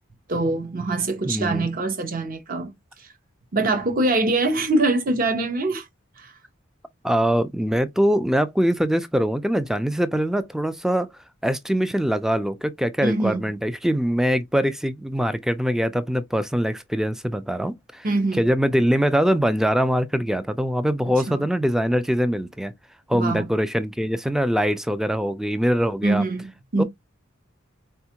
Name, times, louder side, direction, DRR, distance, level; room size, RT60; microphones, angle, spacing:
voice 1, 0.3-2.7 3.5-5.9 6.2-6.3 13.0-13.4 18.0-18.4 21.1-21.5 23.1-23.5 26.0-26.8, right 2 dB, 45° right, 0.8 m, -24 dB
voice 2, 1.3-1.7 7.0-11.1 11.4-18.1 18.4-22.7 23.1-26.2 26.8-26.9, equal, ahead, 0.3 m, -23 dB
4.2 x 2.3 x 2.8 m
head